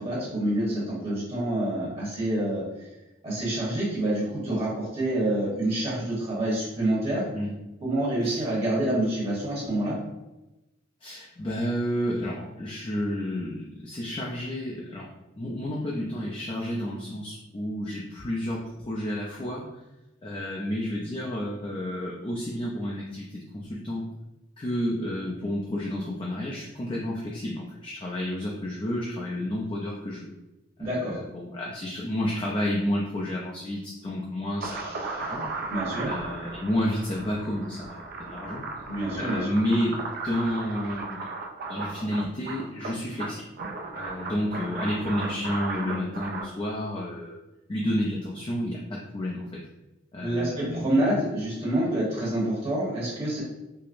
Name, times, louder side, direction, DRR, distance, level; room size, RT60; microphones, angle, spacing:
voice 1, 0.0-2.6 3.2-7.2 7.8-10.0 30.8-31.2 35.7-36.1 38.9-39.5 50.2-53.4, right 1 dB, 30° right, -6 dB, 1.0 m, -27 dB
voice 2, 11.0-15.1 15.4-19.7 20.2-24.1 24.6-30.3 30.8-35.5 36.0-38.6 39.2-41.2 41.7-43.4 43.9-47.4 47.7-49.6 50.1-50.8, left 1 dB, 25° left, -3 dB, 0.4 m, -31 dB
sound 1, 34.6-46.5, right 3 dB, 45° right, 0.4 m, -36 dB
4.6 x 2.0 x 2.5 m, 0.98 s
head